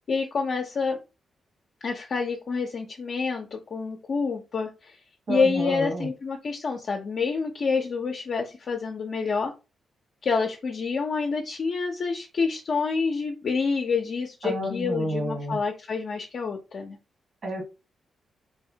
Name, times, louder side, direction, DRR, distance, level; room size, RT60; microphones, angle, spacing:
voice 1, 0.1-1.0 1.8-5.0 5.3-9.5 10.2-17.0, left 4 dB, 60° left, 1 dB, 0.5 m, -28 dB
voice 2, 5.3-6.1 14.4-15.6 17.4-17.6, equal, 65° right, 1 dB, 1.7 m, -29 dB
3.2 x 2.0 x 2.7 m, 0.29 s
supercardioid pair, 55°, 0 cm